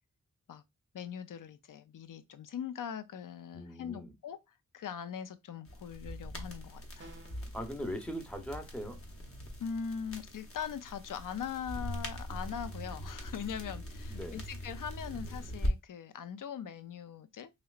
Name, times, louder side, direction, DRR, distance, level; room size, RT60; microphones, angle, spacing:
voice 1, 0.9-4.4 4.7-7.2 9.6-17.5, left 7 dB, 70° left, 0.5 m, -41 dB
voice 2, 3.5-4.1 7.4-9.0 14.1-14.4, equal, 5° left, 0.7 m, -40 dB
sound 1, 5.7-15.7, equal, 40° left, 0.8 m, -41 dB
sound 2, 7.0-7.5, right 2 dB, 35° right, 0.6 m, -52 dB
3.0 x 2.9 x 2.4 m
cardioid pair, 55°, 34 cm